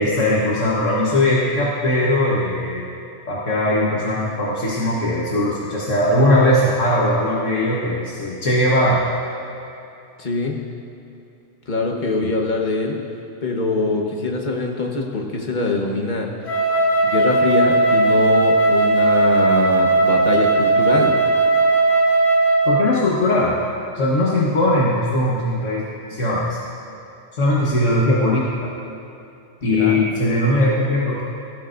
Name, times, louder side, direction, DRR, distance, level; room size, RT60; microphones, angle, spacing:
voice 1, 0.0-2.8 3.3-9.0 12.2-12.3 22.7-23.5 23.9-25.8 26.1-26.6 27.4-28.7 29.6-31.2, left 1 dB, 75° left, -6 dB, 1.7 m, -19 dB
voice 2, 10.2-10.6 11.7-12.9 13.4-16.3 17.0-21.1 29.6-30.0, left 3 dB, 40° left, 0 dB, 1.4 m, -23 dB
Wind instrument woodwind instrument, 16.4-22.9, right 2 dB, 60° left, 1.5 m, -17 dB
17.5 x 14.0 x 2.6 m, 2.7 s
omnidirectional pair, 1.3 m